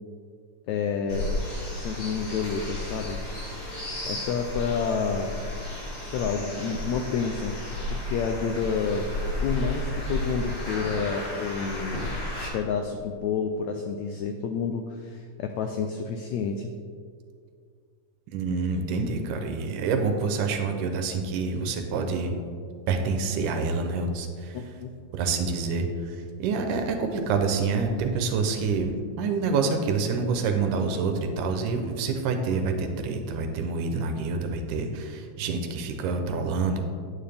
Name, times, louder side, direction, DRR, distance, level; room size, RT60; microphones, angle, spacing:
voice 1, 0.7-1.3 1.7-3.2 4.0-5.3 6.0-7.6 7.9-9.0 9.4-12.0 12.5-16.7 24.5-24.9, left 6 dB, 85° left, 5 dB, 1.6 m, -29 dB
sound 1, 1.1-12.5, left 1 dB, 35° left, 3.2 m, -33 dB
voice 2, 18.3-22.4 22.9-24.6 25.1-36.8, right 4 dB, 75° right, 5 dB, 2.2 m, -27 dB
9.5 x 8.9 x 3.4 m, 2.1 s
omnidirectional pair, 3.8 m